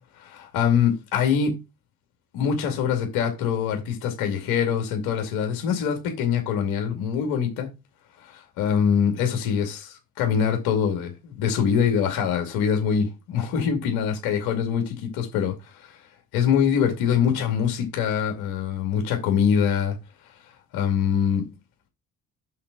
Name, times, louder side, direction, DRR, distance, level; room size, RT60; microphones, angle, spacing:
voice 1, 0.2-1.5 2.3-7.7 8.2-15.5 15.8-16.0 16.3-20.0 20.7-21.4, left 7 dB, 70° left, 2.3 m, -24 dB
5.9 x 5.0 x 6.0 m
hypercardioid pair, 50°, 40 cm